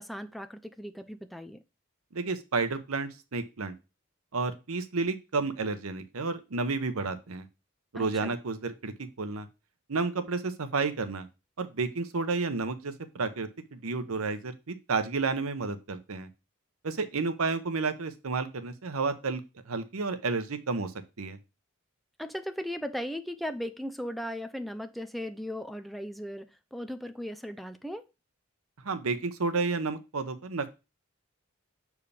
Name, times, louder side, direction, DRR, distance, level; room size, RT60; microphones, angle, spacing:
voice 1, 0.0-1.6 7.9-8.4 22.2-28.0, equal, ahead, 0.5 m, -37 dB
voice 2, 2.1-3.7 4.3-7.4 7.9-9.5 9.9-11.3 11.6-16.3 16.8-19.4 19.7-20.9 21.2-21.4 28.8-30.7, right 4 dB, 90° right, 0.9 m, -31 dB
6.8 x 4.7 x 3.3 m
head